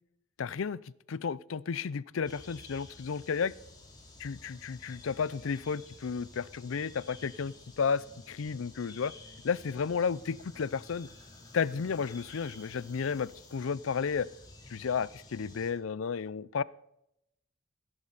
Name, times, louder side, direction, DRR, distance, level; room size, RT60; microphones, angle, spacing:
voice 1, 0.4-0.8 1.1-3.5 4.2-9.1 9.4-11.1 11.5-14.3 14.7-16.6, left 6 dB, 70° left, 0.5 m, -32 dB
sound 1, 2.3-15.7, left 2 dB, 20° left, 2.9 m, -52 dB
16.5 x 11.0 x 4.0 m
head